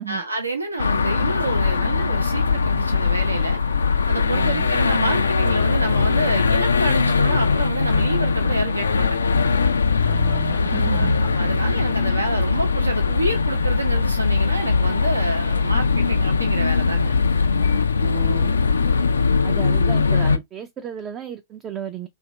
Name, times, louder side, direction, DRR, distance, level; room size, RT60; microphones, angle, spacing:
voice 1, 0.0-3.6 4.1-9.3 10.9-17.1, right 2 dB, 85° right, 0.9 m, -28 dB
sound 1, 0.8-20.4, left 4 dB, 75° left, 0.3 m, -20 dB
voice 2, 4.3-4.7 10.0-11.1 18.0-18.5 18.8-18.9 19.4-22.1, right 10 dB, 25° right, 0.4 m, -33 dB
2.8 x 2.5 x 3.2 m
figure-of-eight pair, 100°, 0 cm